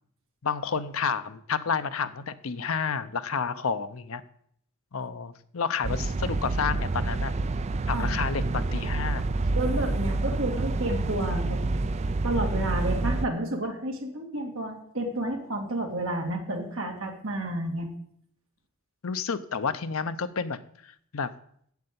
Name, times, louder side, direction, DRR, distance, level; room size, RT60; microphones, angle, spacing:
voice 1, 0.4-4.2 4.9-7.3 7.9-9.3 19.0-20.6 21.1-21.3, left 5 dB, 75° left, 10 dB, 0.7 m, -30 dB
sound 1, 5.8-13.3, right 2 dB, 30° right, 0.4 m, -28 dB
voice 2, 7.9-8.5 9.6-11.6 12.2-17.9, right 1 dB, 65° right, 1 dB, 2.3 m, -31 dB
8.2 x 7.8 x 8.4 m, 0.66 s
head